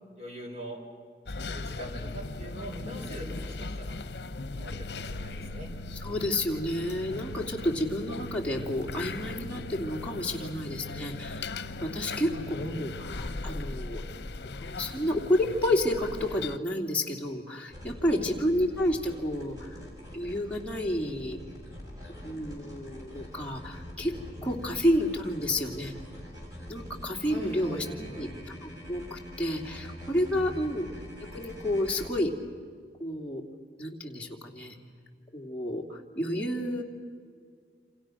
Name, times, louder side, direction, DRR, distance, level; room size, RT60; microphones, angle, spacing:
voice 1, 0.2-0.8 1.4-4.0 4.6-5.7 12.1-12.7 18.0-18.3 24.3-24.6 27.2-28.3 30.3-30.6, right 1 dB, 35° right, 2 dB, 4.9 m, -42 dB
sound 1, 1.3-16.6, left 3 dB, 70° left, 0.9 m, -38 dB
voice 2, 5.9-14.0 14.4-19.9 20.1-21.4 22.2-24.1 24.4-25.9 26.7-31.0 31.3-32.3 33.0-33.4 33.8-34.8 35.3-36.8, left 1 dB, 10° left, -1 dB, 2.8 m, -30 dB
sound 2, 17.7-32.1, equal, 20° right, 6.9 m, -44 dB
28.5 x 27.0 x 6.5 m, 2.1 s
head